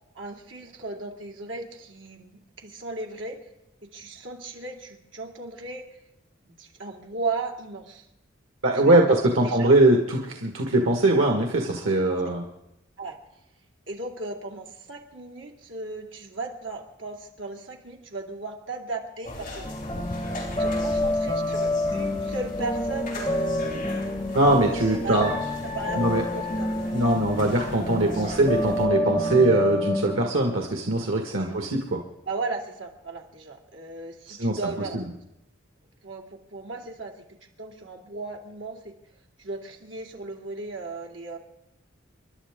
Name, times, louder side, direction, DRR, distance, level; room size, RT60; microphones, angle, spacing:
voice 1, 0.1-2.3 2.6-3.4 3.9-5.9 6.4-8.0 8.7-9.1 9.4-9.7 12.1-12.3 13.0-13.2 13.9-19.7 20.6-24.2 25.0-25.3 25.6-26.0 26.3-27.4 28.0-28.2 31.4-31.6 32.3-35.0 36.0-38.9 39.4-41.4, right 3 dB, 70° right, 1 dB, 2.5 m, -36 dB
voice 2, 8.6-12.4 24.4-25.3 26.0-26.2 26.9-32.0 34.3-34.6 34.9-35.0, right 2 dB, 90° right, 2 dB, 1.8 m, -21 dB
sound 1, 19.2-28.9, left 1 dB, 40° left, 5.0 m, -39 dB
sound 2, 19.6-30.2, left 1 dB, 25° left, 1.6 m, -28 dB
29.0 x 11.5 x 3.7 m, 0.86 s
head